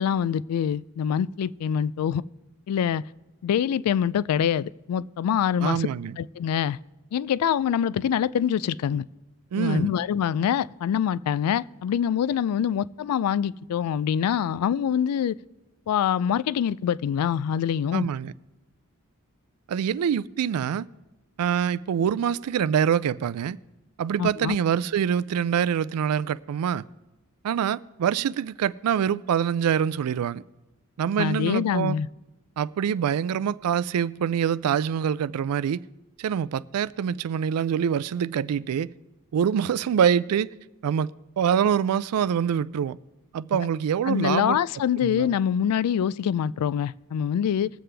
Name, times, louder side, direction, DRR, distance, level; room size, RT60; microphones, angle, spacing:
voice 1, 0.0-2.2 2.7-3.0 3.4-5.9 6.2-6.8 7.1-9.1 9.6-15.4 15.9-18.1 24.2-24.6 31.2-32.1 44.1-47.7, left 8 dB, 80° left, 0.3 m, -25 dB
voice 2, 5.6-6.2 9.5-9.9 17.9-18.3 19.7-20.9 21.4-23.6 24.0-26.8 27.4-30.4 31.0-32.0 32.6-35.8 36.2-38.9 39.3-40.5 40.8-43.0 43.3-44.6 45.0-45.3, right 8 dB, 80° right, 0.3 m, -25 dB
20.5 x 7.7 x 3.3 m
head